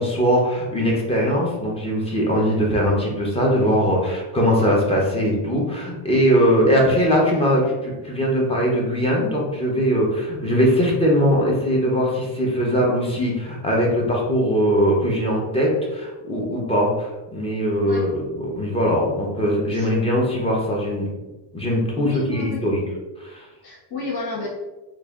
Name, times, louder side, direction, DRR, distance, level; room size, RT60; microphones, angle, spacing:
voice 1, 0.0-21.1 21.5-22.8 23.2-23.5, equal, 10° left, -2 dB, 0.7 m, -21 dB
voice 2, 22.0-22.6 23.6-24.5, left 3 dB, 55° left, -6 dB, 1.4 m, -31 dB
3.3 x 2.5 x 3.5 m, 1.1 s
cardioid pair, 140°, 47 cm